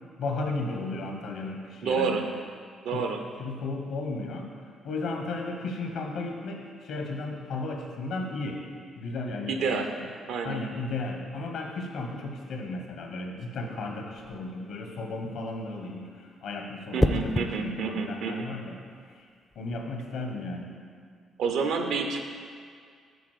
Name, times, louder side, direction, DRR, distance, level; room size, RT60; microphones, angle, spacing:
voice 1, 0.2-2.3 2.9-3.1 3.4-4.5 4.8-8.6 9.0-10.1 10.4-18.8 19.2-19.3 19.5-20.8, left 3 dB, 80° left, 2 dB, 1.2 m, -34 dB
voice 2, 1.8-2.2 2.8-3.2 9.5-9.9 10.3-10.6 16.9-18.5 21.4-22.3, right 5 dB, 80° right, 5 dB, 0.7 m, -28 dB
sound 1, 14.2-14.5 17.0-17.5 19.5-19.8, left 1 dB, 10° left, 0.4 m, -27 dB
6.9 x 4.3 x 6.7 m, 2.1 s
cardioid pair, 90°, 0 cm